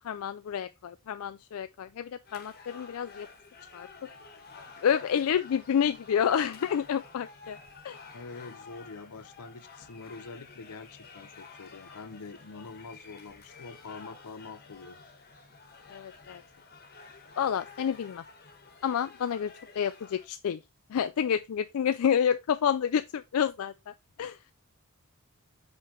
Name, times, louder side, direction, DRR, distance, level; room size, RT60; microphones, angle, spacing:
voice 1, 0.0-3.3 3.7-4.1 4.8-7.6 7.8-8.0 15.9-16.4 17.4-18.2 18.8-20.6 20.9-24.4, left 8 dB, 70° left, 0.3 m, -29 dB
sound 1, 2.3-20.3, left 4 dB, 45° left, 1.2 m, -51 dB
voice 2, 8.1-15.0, left 4 dB, 85° left, 0.7 m, -45 dB
5.7 x 3.3 x 5.1 m
head